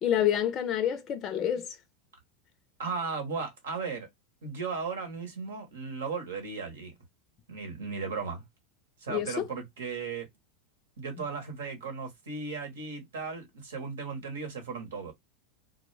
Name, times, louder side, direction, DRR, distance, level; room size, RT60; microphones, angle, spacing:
voice 1, 0.0-1.8 9.1-9.5, left 10 dB, 40° left, 0.4 m, -28 dB
voice 2, 2.8-4.1 4.4-6.9 7.5-8.4 9.0-10.3 11.0-15.1, right 5 dB, 85° right, 1.0 m, -36 dB
2.2 x 2.1 x 3.2 m
hypercardioid pair, 100°, 0 cm